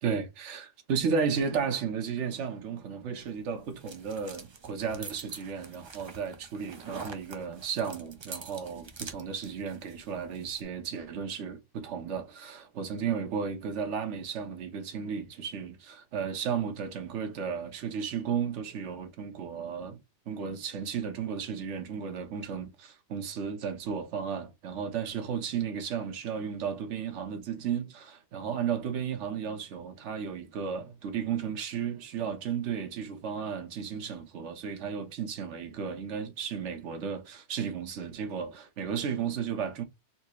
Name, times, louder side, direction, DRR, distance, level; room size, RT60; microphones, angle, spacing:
voice 1, 0.0-20.0 20.3-39.8, right 6 dB, 75° right, 1.2 m, -34 dB
sound 1, 3.2-10.6, right 4 dB, 40° right, 0.4 m, -46 dB
4.2 x 2.9 x 2.3 m
omnidirectional pair, 1.2 m